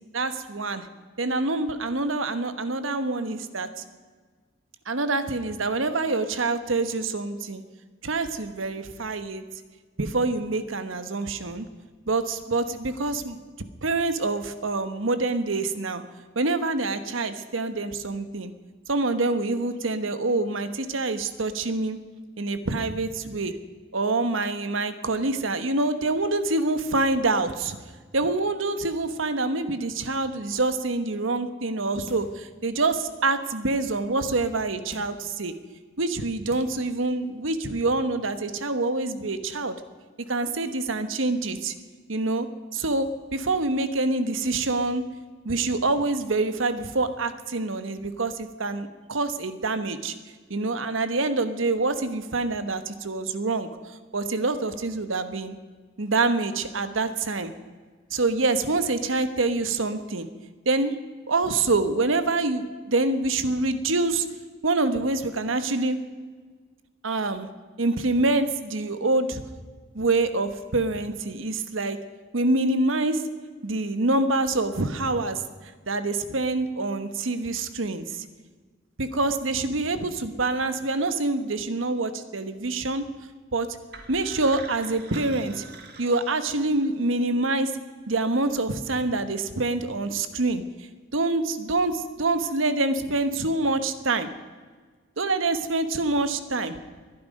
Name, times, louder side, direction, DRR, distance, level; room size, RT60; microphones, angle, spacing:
voice 1, 0.1-0.9 1.2-3.8 4.9-7.6 8.0-9.4 10.0-11.7 12.1-13.4 13.8-16.0 16.3-18.5 18.9-22.0 22.4-23.5 23.9-27.8 28.1-35.5 36.0-39.7 40.3-41.7 42.1-42.5 42.7-45.0 45.4-50.1 50.5-53.7 54.1-55.6 56.0-57.5 58.1-60.3 60.6-60.9 61.3-64.3 64.6-66.0 67.0-67.5 67.8-69.4 69.9-72.0 72.3-73.2 73.6-75.4 75.9-78.2 79.0-83.0 83.5-83.7 84.1-85.6 86.0-87.7 88.1-90.6 91.1-94.3 95.2-96.8, right 2 dB, 90° right, 10 dB, 1.2 m, -26 dB
sound 1, 32.1-32.5 33.0-33.1 34.9-35.3 36.0-36.1 36.5-36.9 37.3-37.4, right 1 dB, 35° right, 1.5 m, -44 dB
sound 2, 83.9-86.9, right 4 dB, 55° right, 1.9 m, -44 dB
21.0 x 11.0 x 5.3 m, 1.5 s
head